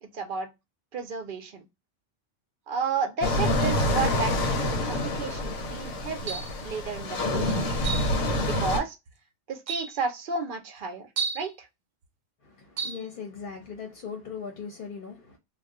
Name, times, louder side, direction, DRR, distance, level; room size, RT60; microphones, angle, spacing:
voice 1, 0.0-0.5 0.9-1.6 2.7-7.8 8.4-9.0 9.5-11.1 11.3-11.7, right 5 dB, 55° right, 0.6 m, -32 dB
sound 1, 3.2-8.8, left 1 dB, 80° left, 1.0 m, -27 dB
sound 2, 6.3-6.6 7.8-8.1 9.1-9.2 9.7-10.0 11.2-11.5 12.8-13.0, right 5 dB, 90° right, 1.0 m, -32 dB
voice 2, 12.4-15.4, left 6 dB, 50° left, 0.8 m, -39 dB
2.4 x 2.2 x 3.6 m
omnidirectional pair, 1.3 m